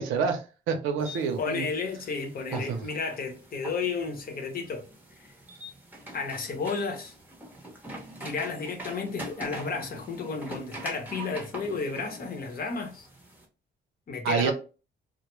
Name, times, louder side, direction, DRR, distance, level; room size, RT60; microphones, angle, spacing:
voice 1, 0.0-1.7 2.5-2.9 14.2-14.5, right 6 dB, 90° right, 0.6 m, -28 dB
sound 1, 1.0-13.4, right 1 dB, 10° right, 0.7 m, -44 dB
voice 2, 1.4-4.8 6.1-7.1 8.2-13.1 14.1-14.5, left 4 dB, 50° left, 0.7 m, -32 dB
2.2 x 2.0 x 2.9 m
cardioid pair, 90°, 20 cm